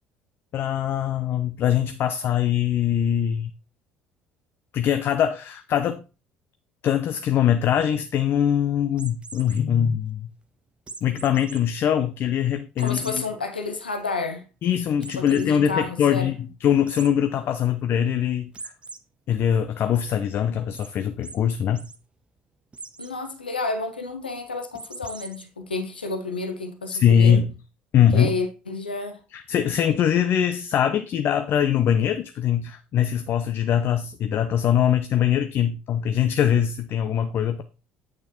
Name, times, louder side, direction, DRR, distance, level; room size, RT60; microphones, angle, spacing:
voice 1, 0.5-3.5 4.7-6.0 6.8-10.3 11.0-13.2 14.6-18.5 19.3-21.9 26.9-27.5 27.9-28.3 29.3-37.6, left 9 dB, 45° left, 0.6 m, -22 dB
sound 1, 8.9-9.6 10.9-11.6 12.0-12.1 12.8-13.3 13.8-13.9 14.1-14.2 15.0-15.5 16.9-17.1 18.5-19.0 19.4-20.0 20.7-20.9 21.2-21.4 21.7-22.0 22.7-23.1 24.7-25.4, right 4 dB, 20° right, 0.8 m, -40 dB
voice 2, 12.8-14.5 15.2-16.3 23.0-27.4 28.0-29.2, left 3 dB, 85° left, 0.8 m, -30 dB
8.5 x 6.5 x 3.0 m
figure-of-eight pair, 55°, 5 cm